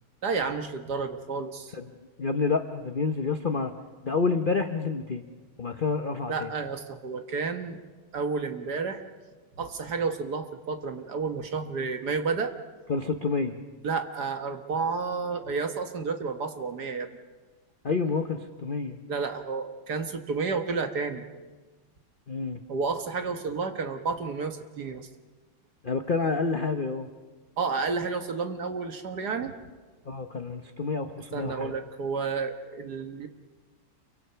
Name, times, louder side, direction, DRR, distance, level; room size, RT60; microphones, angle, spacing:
voice 1, 0.2-1.8 6.3-7.8 8.1-9.0 9.6-12.5 13.8-17.1 19.1-21.3 22.7-25.1 27.6-29.5 31.3-33.3, right 4 dB, 55° right, 7 dB, 1.7 m, -31 dB
voice 2, 2.2-3.7 4.0-5.3 5.6-6.5 12.9-13.6 17.8-19.0 22.3-22.6 25.8-27.1 30.0-31.7, left 4 dB, 45° left, 7 dB, 0.7 m, -28 dB
28.5 x 23.5 x 5.7 m, 1.4 s
omnidirectional pair, 2.2 m